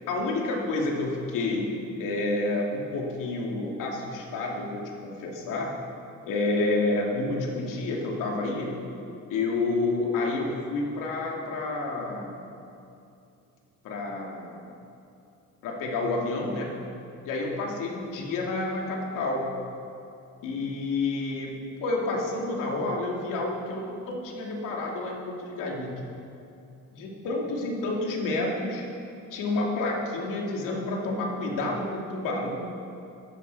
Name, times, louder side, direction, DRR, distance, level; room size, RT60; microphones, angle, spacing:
voice 1, 0.0-1.7 2.0-5.7 6.2-8.8 9.3-12.4 13.8-14.6 15.6-16.8 17.2-19.5 20.4-26.0 26.9-28.9 29.3-32.8, left 2 dB, 90° left, -1 dB, 2.7 m, -29 dB
15.5 x 12.5 x 4.8 m, 2.7 s
cardioid pair, 120°, 31 cm